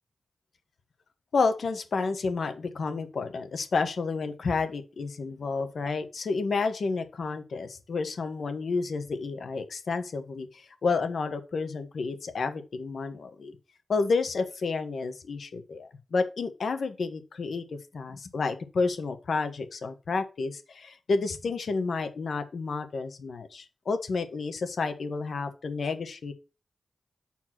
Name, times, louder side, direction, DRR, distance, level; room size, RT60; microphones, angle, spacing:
voice 1, 1.3-13.5 13.9-26.3, left 4 dB, 80° left, 1.3 m, -30 dB
7.5 x 4.5 x 6.0 m
cardioid pair, 55°, 0 cm